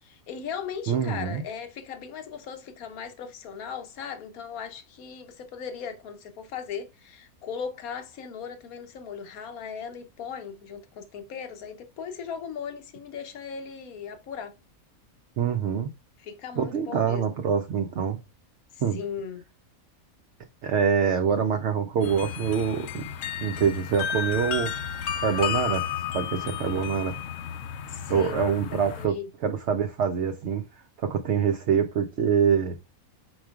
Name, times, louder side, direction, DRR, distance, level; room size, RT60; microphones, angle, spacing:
voice 1, 0.0-14.5 16.2-17.2 18.7-19.4 27.9-28.5 28.9-29.3, left 7 dB, 85° left, 1.3 m, -38 dB
voice 2, 0.9-1.4 15.4-15.9 16.6-18.2 18.8-19.0 20.6-23.1 23.4-24.7 25.2-25.9 26.1-27.2 28.1-29.2 29.4-30.6 31.0-32.8, right 7 dB, 60° right, 0.8 m, -25 dB
sound 1, 22.0-29.1, left 8 dB, 65° left, 0.9 m, -32 dB
4.7 x 4.3 x 2.3 m
omnidirectional pair, 1.5 m